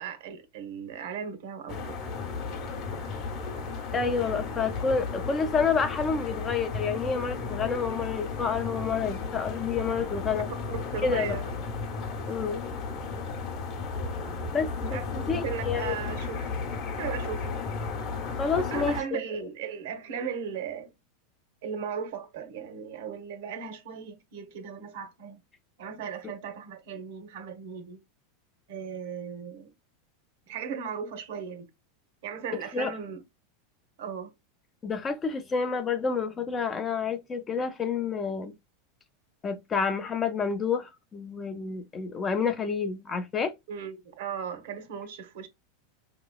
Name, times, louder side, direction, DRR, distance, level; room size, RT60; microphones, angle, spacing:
voice 1, 0.0-2.0 10.7-11.4 14.4-14.6 14.9-16.6 17.0-17.6 18.3-20.9 21.6-25.4 25.8-28.0 28.7-29.7 30.5-31.7 32.2-33.2 34.0-34.3 43.7-45.5, right 7 dB, 65° right, 0.9 m, -37 dB
sound 1, 1.7-19.0, left 4 dB, 35° left, 0.9 m, -34 dB
voice 2, 3.9-10.5 11.0-11.4 12.3-12.6 14.5-16.0 18.4-19.2 32.7-32.9 34.8-38.5 39.4-43.5, left 5 dB, 15° left, 0.4 m, -29 dB
4.7 x 2.9 x 2.3 m
supercardioid pair, 165°, 0 cm